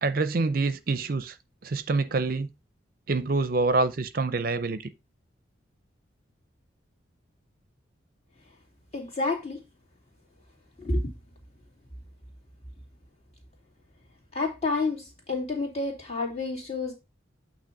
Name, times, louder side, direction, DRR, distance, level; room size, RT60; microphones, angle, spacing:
voice 1, 0.0-1.4 1.6-2.5 3.1-4.9, right 3 dB, 50° right, 0.5 m, -26 dB
voice 2, 8.9-9.6 10.8-11.0 14.3-16.9, left 3 dB, 35° left, 2.5 m, -29 dB
8.8 x 3.0 x 5.8 m
head